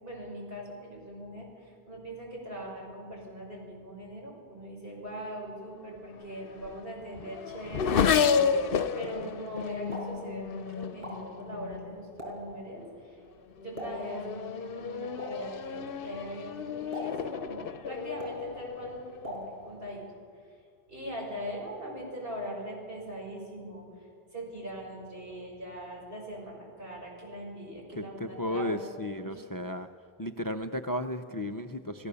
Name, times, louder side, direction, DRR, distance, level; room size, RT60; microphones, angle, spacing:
voice 1, 0.0-13.2 13.6-20.0 20.9-23.9 24.3-28.8 29.2-29.4, equal, 65° right, -2 dB, 6.5 m, -41 dB
Race car auto racing / Accelerating revving vroom, 6.1-12.0 12.8-13.1 13.6-19.5, left 7 dB, 65° left, 0.9 m, -31 dB
Explosion, 9.7-19.9, equal, 35° right, 4.8 m, -46 dB
voice 2, 28.0-29.9 30.2-32.1, left 1 dB, 25° left, 7 dB, 0.6 m, -34 dB
29.0 x 17.0 x 7.0 m, 2.2 s
omnidirectional pair, 1.0 m